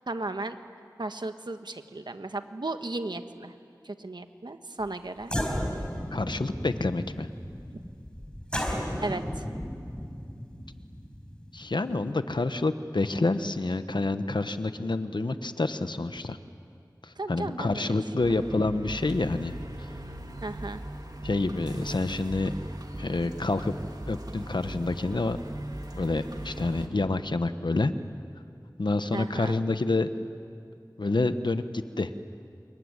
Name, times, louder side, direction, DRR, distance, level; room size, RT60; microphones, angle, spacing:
voice 1, 0.1-0.6 1.0-3.5 3.8-5.3 7.7-7.8 9.0-9.4 17.2-18.4 20.4-20.8 29.1-29.6, right 2 dB, 75° right, 8 dB, 1.3 m, -35 dB
sound 1, 4.8-4.9 5.2-12.1, equal, 15° left, 4.8 m, -34 dB
voice 2, 6.1-7.3 11.5-16.4 17.0-19.9 21.2-22.5 23.0-23.8 24.1-25.4 26.0-27.9 28.8-30.1 31.0-32.1, left 2 dB, 85° left, 10 dB, 1.1 m, -28 dB
sound 2, 18.2-26.9, right 1 dB, 60° right, 2.3 m, -39 dB
27.0 x 23.0 x 9.7 m, 2.4 s
wide cardioid pair, 45°, 8 cm